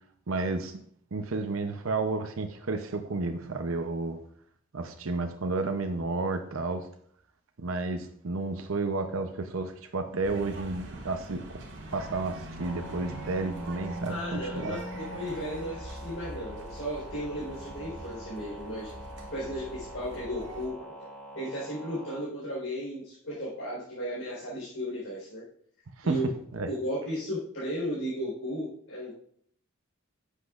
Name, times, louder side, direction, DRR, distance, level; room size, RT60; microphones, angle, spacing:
voice 1, 0.3-0.8 1.1-4.2 4.7-6.9 7.6-11.6 11.9-14.8 26.0-26.7, right 3 dB, 80° right, 6 dB, 0.7 m, -32 dB
sound 1, 10.2-20.7, right 1 dB, 60° right, 1.7 m, -42 dB
sound 2, 12.6-22.2, right 1 dB, 5° left, 1.5 m, -46 dB
voice 2, 14.1-18.9 19.3-20.8 21.3-25.4 26.0-26.2 26.7-29.1, equal, 70° left, -9 dB, 4.1 m, -35 dB
11.0 x 8.3 x 2.5 m, 0.63 s
head